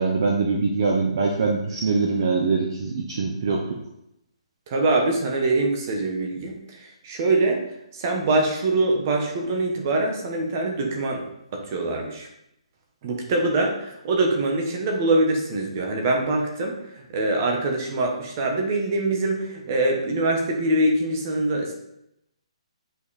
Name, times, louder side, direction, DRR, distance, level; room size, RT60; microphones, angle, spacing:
voice 1, 0.0-3.8, right 4 dB, 40° right, 1 dB, 0.9 m, -23 dB
voice 2, 4.7-7.6 7.9-11.2 11.5-12.3 13.0-16.8 17.1-21.7, right 2 dB, 25° right, 1 dB, 1.2 m, -24 dB
8.1 x 5.0 x 4.3 m, 0.80 s
hypercardioid pair, 175°, 3 cm